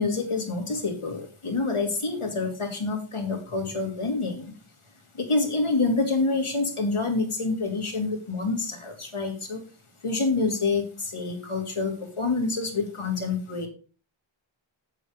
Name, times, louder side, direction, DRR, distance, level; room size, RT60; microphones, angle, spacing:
voice 1, 0.0-4.5 5.1-9.6 10.0-13.7, left 3 dB, 85° left, 3 dB, 2.6 m, -27 dB
8.1 x 7.7 x 4.9 m, 0.36 s
wide cardioid pair, 45°, 49 cm